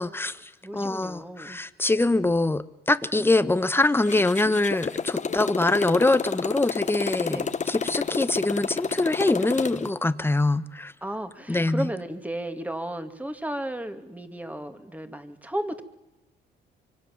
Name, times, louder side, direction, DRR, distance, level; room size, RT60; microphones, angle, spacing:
voice 1, 0.0-10.9 11.5-11.9, left 2 dB, 10° left, 13 dB, 1.2 m, -24 dB
voice 2, 0.6-1.6 7.3-7.5 11.0-15.8, right 1 dB, 5° right, 8 dB, 2.4 m, -34 dB
Motorcycle, 4.0-9.9, left 6 dB, 35° left, 1.2 m, -30 dB
25.5 x 24.0 x 7.4 m, 0.97 s
cardioid pair, 90°, 20 cm